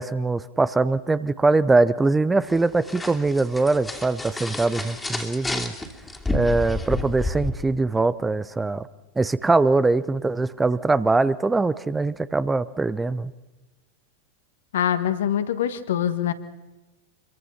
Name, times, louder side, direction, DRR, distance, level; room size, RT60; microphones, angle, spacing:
voice 1, 0.0-5.7 6.3-8.9 9.2-13.3, right 3 dB, 10° right, 16 dB, 0.7 m, -22 dB
sound 1, 2.4-7.5, left 2 dB, 10° left, 2.8 m, -30 dB
voice 2, 14.7-16.3, left 10 dB, 60° left, 10 dB, 1.8 m, -24 dB
26.0 x 23.0 x 5.9 m, 1.1 s
figure-of-eight pair, 90°, 0 cm